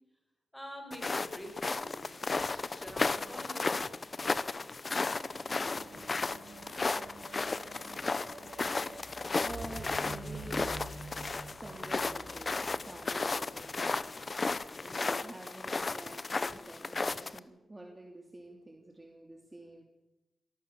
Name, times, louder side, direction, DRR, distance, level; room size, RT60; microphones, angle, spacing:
voice 1, 0.5-3.8, equal, 5° left, 4 dB, 6.6 m, -47 dB
sound 1, 0.9-17.4, left 3 dB, 35° left, 1.0 m, -34 dB
sound 2, 4.8-14.4 15.2-15.3, right 3 dB, 60° right, 7.9 m, -48 dB
voice 2, 9.4-10.7 11.4-14.1 14.8-19.8, right 1 dB, 15° right, 2 dB, 3.0 m, -48 dB
26.5 x 19.0 x 7.2 m, 0.96 s
wide cardioid pair, 120°, 0 cm